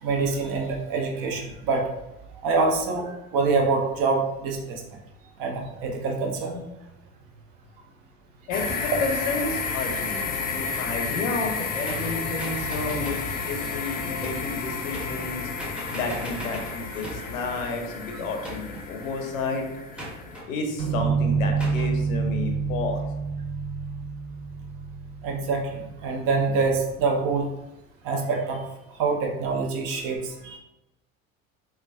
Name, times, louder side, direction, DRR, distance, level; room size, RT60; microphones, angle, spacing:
voice 1, 0.0-1.9 2.4-4.8 5.4-6.6 17.1-17.2 25.2-27.5 28.0-28.6 29.0-30.6, right 4 dB, 55° right, 2 dB, 0.7 m, -25 dB
voice 2, 8.5-15.5 15.9-19.7 20.4-23.0, left 3 dB, 80° left, 3 dB, 0.6 m, -31 dB
sound 1, 8.5-20.4, left 5 dB, 25° left, 0.3 m, -32 dB
sound 2, 11.8-13.3 14.2-14.5 14.9-15.3 15.6-17.4 18.4-18.9 20.0-20.5 21.6-21.9, equal, 5° right, 0.7 m, -38 dB
sound 3, 20.8-26.3, right 5 dB, 75° right, 1.1 m, -28 dB
3.2 x 2.2 x 2.2 m, 0.93 s
hypercardioid pair, 65°, 40 cm